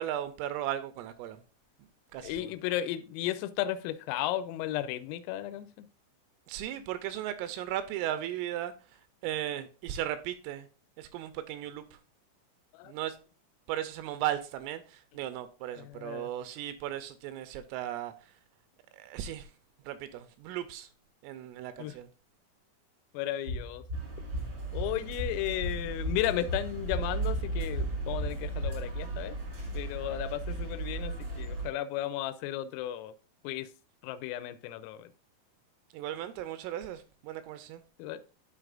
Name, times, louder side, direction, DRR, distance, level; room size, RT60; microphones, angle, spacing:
voice 1, 0.0-1.4 2.1-2.5 6.5-8.7 9.2-10.7 11.0-11.8 12.8-13.2 13.7-18.1 18.9-19.5 19.9-20.9 21.2-22.1 35.9-37.8, right 12 dB, 85° right, 3.1 m, -36 dB
voice 2, 2.2-5.9 12.8-12.9 15.8-16.3 21.8-21.9 23.1-23.8 24.7-29.4 29.7-33.1 33.4-33.7 34.0-35.1 38.0-38.2, left 13 dB, 85° left, 3.2 m, -34 dB
sound 1, 23.5-28.8, equal, 35° right, 0.8 m, -37 dB
Ticket Machine, 23.9-31.7, right 3 dB, 55° right, 1.3 m, -36 dB
12.5 x 4.8 x 2.5 m
omnidirectional pair, 6.0 m